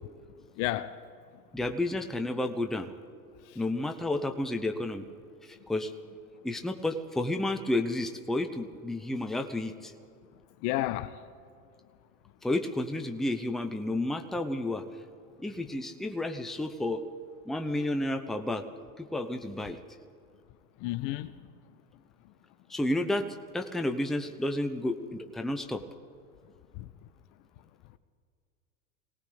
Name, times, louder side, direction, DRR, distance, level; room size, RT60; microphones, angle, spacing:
voice 1, 0.6-0.9 3.5-3.6 10.6-11.1 20.8-21.3 26.7-26.9, left 15 dB, 40° left, 0.6 m, -31 dB
voice 2, 1.5-2.9 3.5-5.1 5.4-5.9 6.4-9.9 12.4-14.8 15.4-17.0 17.5-18.6 19.0-19.8 22.7-25.8, left 1 dB, ahead, 0.7 m, -31 dB
23.0 x 18.0 x 3.4 m
hypercardioid pair, 90°, 48 cm